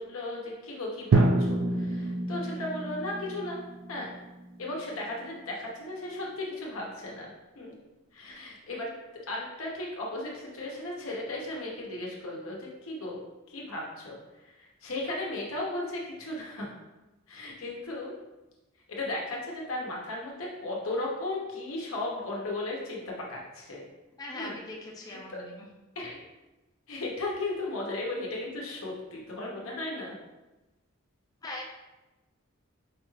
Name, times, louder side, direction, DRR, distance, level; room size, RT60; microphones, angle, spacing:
voice 1, 0.0-3.6 3.9-4.1 4.6-7.8 8.1-8.9 9.3-14.2 14.4-16.7 17.3-18.1 18.9-23.8 24.3-24.5 25.1-25.5 26.0-26.2 26.9-30.1, left 2 dB, 80° left, -2 dB, 0.9 m, -36 dB
Drum, 1.1-5.1, right 2 dB, 60° right, 0.3 m, -28 dB
voice 2, 24.2-25.7 31.4-31.7, left 2 dB, 20° left, -1 dB, 0.4 m, -40 dB
5.0 x 2.4 x 3.1 m, 1.1 s
head